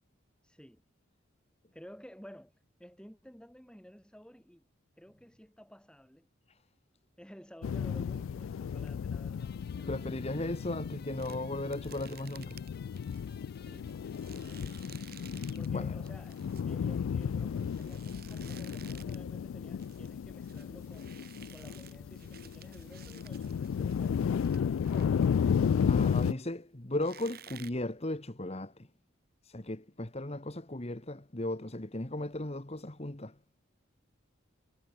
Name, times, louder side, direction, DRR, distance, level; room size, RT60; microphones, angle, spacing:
voice 1, 0.4-0.8 1.7-2.5 2.8-4.6 5.0-6.3 7.2-10.4 11.2-11.6 13.6-14.0 14.4-14.9 15.6-21.2 21.5-26.6, equal, 5° left, 4.3 m, -54 dB
sound 1, 7.6-26.3, left 7 dB, 80° left, 0.3 m, -33 dB
sound 2, 9.3-15.7, left 5 dB, 50° left, 6.0 m, -58 dB
voice 2, 9.9-12.6 15.7-15.9 25.8-28.9 29.4-33.4, left 1 dB, 30° left, 1.5 m, -36 dB
sound 3, 11.2-15.8 16.1-19.3 19.6-26.6 27.0-27.7, right 10 dB, 50° right, 7.2 m, -55 dB
head